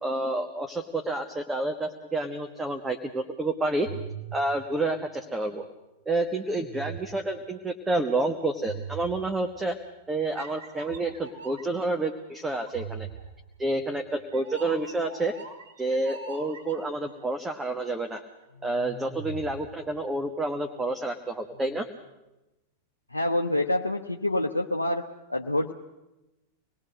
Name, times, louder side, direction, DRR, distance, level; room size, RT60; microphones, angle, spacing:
voice 1, 0.0-3.9 4.3-5.6 6.0-9.8 10.1-13.1 13.6-15.3 15.8-18.2 18.6-21.9, right 2 dB, 10° right, 5 dB, 1.4 m, -29 dB
sound 1, 3.8-5.6 6.4-7.4 8.6-9.6 10.3-12.0 12.6-17.1 18.5-20.3 21.4-21.8, right 6 dB, 70° right, 3.1 m, -42 dB
voice 2, 23.1-25.0 25.3-25.7, left 1 dB, 85° left, 3 dB, 0.8 m, -26 dB
26.5 x 20.0 x 6.5 m, 1.0 s
figure-of-eight pair, 90°, 0 cm